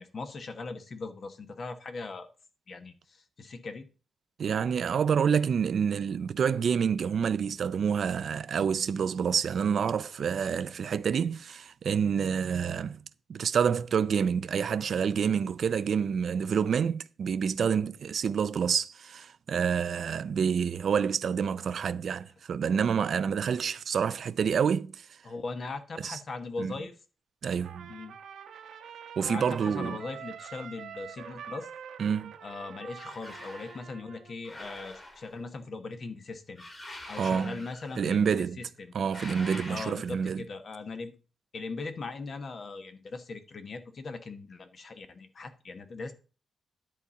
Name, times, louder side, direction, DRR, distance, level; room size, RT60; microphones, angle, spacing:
voice 1, 0.0-2.3 2.7-3.9 25.2-26.9 27.9-28.2 29.2-31.7 32.4-36.6 37.1-38.9 39.7-41.2 41.5-46.1, left 3 dB, 45° left, 1.1 m, -40 dB
voice 2, 4.4-13.0 13.3-25.1 26.0-26.2 26.6-26.7 27.4-27.9 29.2-30.0 32.0-32.3 37.2-37.6 38.0-38.6 38.9-40.5, right 7 dB, 55° right, 0.4 m, -28 dB
Trumpet, 27.6-34.4, right 8 dB, 90° right, 1.1 m, -45 dB
sound 1, 32.9-33.8 34.4-35.5 36.6-38.2 39.0-40.3, left 1 dB, 25° left, 2.3 m, -45 dB
10.5 x 4.2 x 6.8 m
wide cardioid pair, 130°, 0 cm